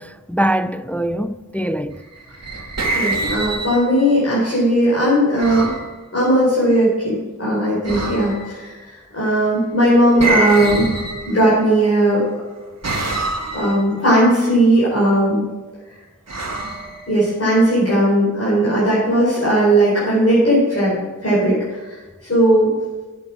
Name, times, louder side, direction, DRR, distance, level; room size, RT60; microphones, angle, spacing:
voice 1, 0.0-2.0, right 1 dB, 5° left, 0.3 m, -23 dB
sound 1, 2.1-4.1 5.4-5.9 7.8-8.6 10.2-11.7 12.8-13.8 16.3-17.5, right 2 dB, 50° right, 1.8 m, -25 dB
voice 2, 2.9-5.7 6.1-10.9 11.2-12.2 13.5-15.4 17.1-22.0 22.3-22.7, right 1 dB, 45° left, 4.4 m, -17 dB
9.6 x 8.3 x 6.0 m
wide cardioid pair, 85°, 33 cm